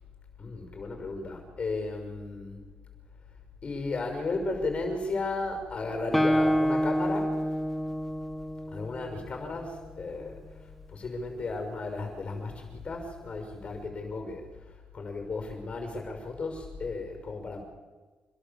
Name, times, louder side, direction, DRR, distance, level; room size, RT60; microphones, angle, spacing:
voice 1, 0.4-2.6 3.6-7.4 8.7-10.4 10.9-17.6, left 3 dB, 45° left, 5 dB, 6.0 m, -34 dB
Guitar, 6.1-9.8, equal, 5° left, 1.4 m, -28 dB
27.0 x 21.5 x 7.3 m, 1.3 s
cardioid pair, 100°, 3 cm